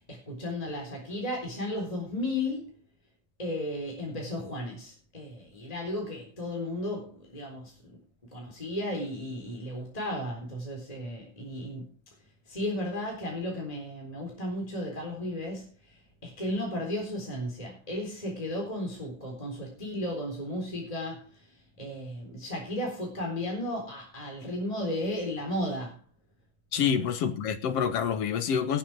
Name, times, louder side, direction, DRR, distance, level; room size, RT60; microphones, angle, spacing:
voice 1, 0.0-2.7 3.4-7.8 8.3-11.9 12.5-21.5 21.8-26.0 26.7-27.0, left 1 dB, 10° left, 3.8 m, -34 dB
voice 2, 26.7-28.8, left 7 dB, 65° left, 1.9 m, -27 dB
18.0 x 8.4 x 4.7 m
omnidirectional pair, 3.4 m